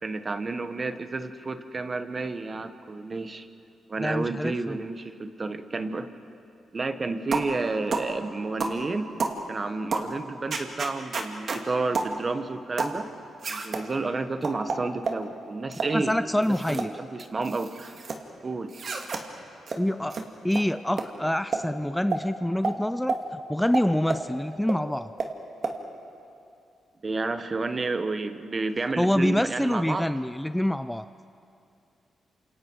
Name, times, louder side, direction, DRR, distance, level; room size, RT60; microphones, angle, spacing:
voice 1, 0.0-3.5 3.9-6.1 6.7-9.1 9.5-13.1 13.5-17.7 18.4-18.7 27.0-30.1, right 3 dB, 35° right, 9 dB, 1.4 m, -31 dB
voice 2, 4.0-4.8 15.9-16.9 19.8-20.2 20.4-25.1 29.0-31.1, left 1 dB, 5° left, 12 dB, 0.5 m, -26 dB
sound 1, 7.3-7.5 7.9-8.1 8.6-8.8 9.2-9.4 9.9-10.1 10.5-11.6 11.9-12.1 12.8-13.0 13.4-13.8 14.4-15.2 15.7-15.9 16.4-16.9 17.2-18.2 18.7-19.2 19.7-19.8 20.1-20.2 20.5-20.6 21.0-21.1 21.5-21.7 22.1-22.2 22.6-22.8 23.1-23.2 23.7-24.3 24.7-24.8 25.2-25.3 25.6-25.8, right 4 dB, 55° right, 2.3 m, -30 dB
28.5 x 27.0 x 4.8 m, 2.6 s
cardioid pair, 75°, 0 cm